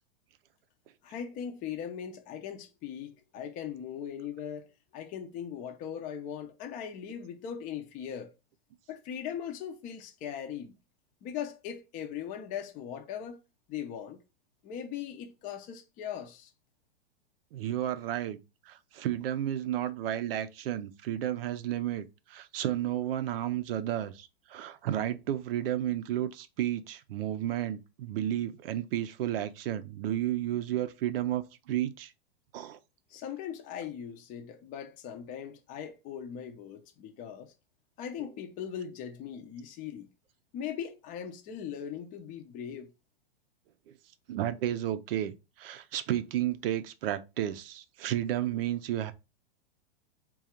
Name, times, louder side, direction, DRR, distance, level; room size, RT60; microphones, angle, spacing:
voice 1, 1.0-4.7 4.9-8.3 8.9-10.7 11.2-13.4 13.7-14.2 14.6-16.5 33.1-37.5 38.0-40.1 40.5-42.9, left 8 dB, 25° left, 0.5 m, -39 dB
voice 2, 17.5-18.4 18.7-32.1 32.5-32.8 43.9-44.0 44.3-49.1, right 12 dB, 70° right, 0.6 m, -32 dB
3.8 x 2.4 x 4.2 m
hypercardioid pair, 140°, 31 cm